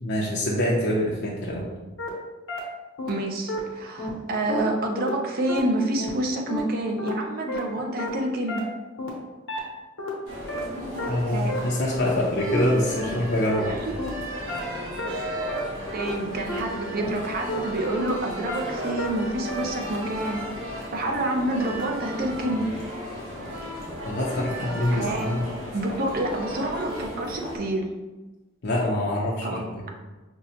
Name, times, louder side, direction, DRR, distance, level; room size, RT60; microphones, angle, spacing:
voice 1, 0.0-1.7 11.1-13.7 24.0-25.4 28.6-29.8, left 1 dB, 60° left, -3 dB, 0.5 m, -25 dB
sound 1, 2.0-2.1 2.5-2.6 3.0-3.1 3.5-3.6 4.0-4.1 4.5-4.6 5.0-5.1 5.5-5.6 6.0-6.1 6.5-6.6 7.0-7.1 7.5-7.6 8.0-8.1 8.5-8.6 9.0-9.1 9.5-9.6 10.0-10.1 10.5-10.6 11.0-11.1 11.5-11.6 12.0-12.1 12.5-12.6 13.0-13.1 13.5-13.6 14.0-14.1 14.5-14.6 15.0-15.1 15.5-15.6 16.0-16.1 16.5-16.6 17.0-17.1 17.5-17.6 18.0-18.1 18.5-18.6 19.0-19.1 19.5-19.6, left 2 dB, 90° left, 1.0 m, -31 dB
voice 2, 3.1-8.6 11.0-11.6 13.7-14.6 15.9-20.4 20.9-22.7 24.9-25.3 25.7-27.9 29.4-29.6, right 1 dB, 50° right, 2 dB, 0.5 m, -28 dB
sound 2, 10.3-27.6, equal, 80° right, 1.0 m, -35 dB
5.2 x 2.1 x 2.7 m, 1.2 s
head